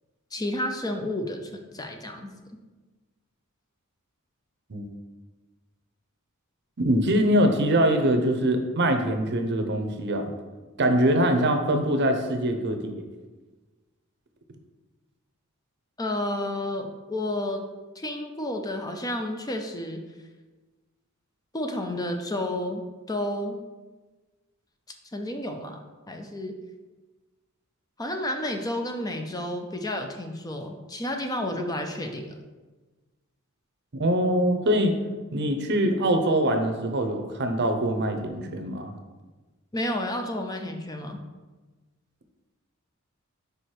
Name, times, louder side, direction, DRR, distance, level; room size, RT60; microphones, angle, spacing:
voice 1, 0.3-2.3 16.0-17.6 18.0-20.0 21.5-22.8 23.1-23.6 25.1-26.6 28.0-32.3 39.7-41.2, left 1 dB, 15° left, 4 dB, 0.5 m, -31 dB
voice 2, 6.8-10.3 10.8-13.1 33.9-34.9 35.3-38.9, right 1 dB, 55° right, 6 dB, 0.7 m, -23 dB
5.0 x 4.8 x 4.4 m, 1.2 s
head